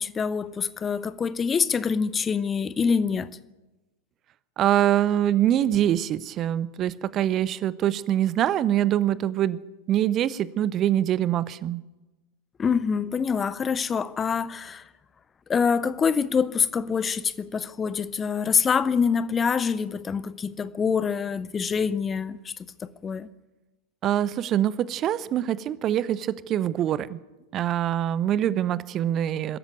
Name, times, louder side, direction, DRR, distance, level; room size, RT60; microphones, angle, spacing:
voice 1, 0.0-3.3 12.6-14.9 15.5-23.3, left 6 dB, 20° left, 0.8 m, -25 dB
voice 2, 4.6-9.6 9.9-11.8 24.0-27.2 27.5-29.6, right 11 dB, 30° right, 0.8 m, -24 dB
23.0 x 13.5 x 9.3 m
figure-of-eight pair, 90°, 0 cm